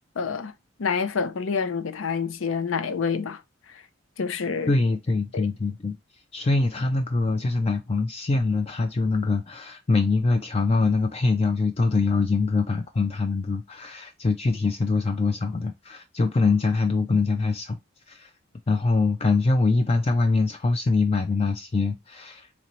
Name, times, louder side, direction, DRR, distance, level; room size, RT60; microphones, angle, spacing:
voice 1, 0.2-0.5 0.8-3.4 3.7-3.8 4.2-4.7 5.3-5.5, left 5 dB, 90° left, 0.6 m, -27 dB
voice 2, 4.7-6.0 6.3-17.8 18.1-18.3 18.7-22.5, left 3 dB, 30° left, 0.4 m, -23 dB
4.3 x 2.9 x 3.0 m
head